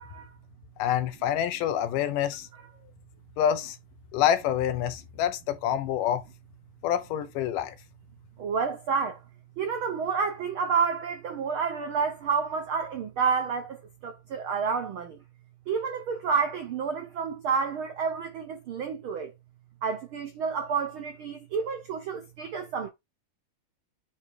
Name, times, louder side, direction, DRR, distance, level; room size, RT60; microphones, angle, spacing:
voice 1, 0.8-2.5 3.4-3.8 4.1-6.2 6.8-7.7, left 10 dB, 80° left, 2.5 m, -27 dB
voice 2, 8.4-9.2 9.6-15.2 15.7-19.3 19.8-22.9, right 5 dB, 85° right, 1.1 m, -29 dB
9.2 x 3.1 x 4.8 m
omnidirectional pair, 3.8 m